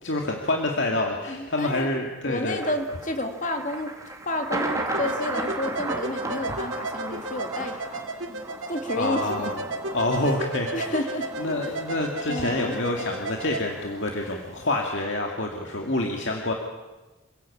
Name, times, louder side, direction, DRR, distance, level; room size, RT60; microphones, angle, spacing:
voice 1, 0.0-2.6 9.0-9.6 9.9-11.0 11.4-16.5, left 2 dB, 60° left, 1 dB, 2.3 m, -27 dB
voice 2, 1.3-1.9 2.2-3.9 4.3-9.5 10.7-11.3 11.6-11.8 12.3-12.8, left 1 dB, 35° left, 5 dB, 2.3 m, -31 dB
Thunder, 2.6-14.9, right 2 dB, 15° right, 2.5 m, -36 dB
sound 1, 4.9-13.6, right 2 dB, 65° right, 2.7 m, -34 dB
27.5 x 16.5 x 8.6 m, 1.2 s
head